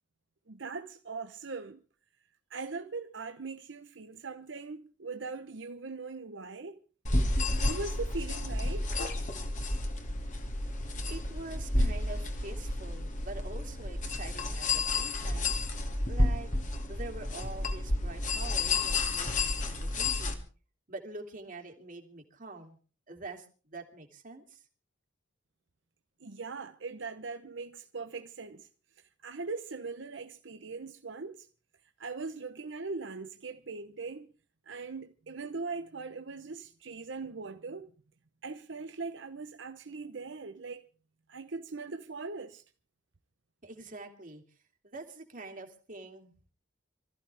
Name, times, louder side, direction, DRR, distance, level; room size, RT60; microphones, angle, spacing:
voice 1, 0.5-1.8 2.5-6.8 7.6-8.9 26.2-28.7 29.2-31.5 32.0-34.3 34.7-37.9 38.4-40.9 41.3-42.6, right 4 dB, 65° right, 0.9 m, -40 dB
sound 1, 7.1-20.3, left 2 dB, 40° left, 2.3 m, -31 dB
voice 2, 11.1-15.5 16.1-16.5 16.9-20.4 20.9-22.8 23.1-24.6 43.6-44.4 44.8-46.3, right 2 dB, 45° right, 2.9 m, -45 dB
25.5 x 14.5 x 3.5 m
head